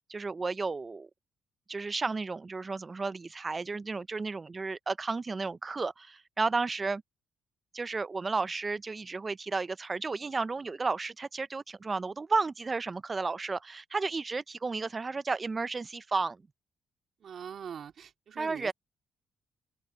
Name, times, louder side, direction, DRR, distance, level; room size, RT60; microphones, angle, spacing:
voice 1, 0.1-1.1 1.7-7.0 7.7-16.4 18.4-18.7, right 4 dB, 30° right, 0.5 m, -33 dB
voice 2, 17.2-18.7, right 8 dB, 60° right, 2.2 m, -42 dB
open air
cardioid pair, 90°, 0 cm